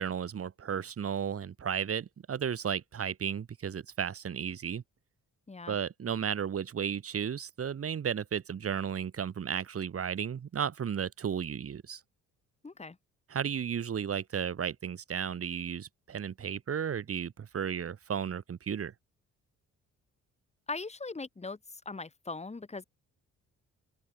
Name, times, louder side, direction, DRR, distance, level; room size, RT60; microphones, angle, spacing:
voice 1, 0.0-4.8 5.7-12.0 13.3-18.9, right 8 dB, 50° right, 3.2 m, -34 dB
voice 2, 12.6-13.0 20.7-22.8, left 3 dB, 20° left, 3.3 m, -40 dB
open air
cardioid pair, 90°, 30 cm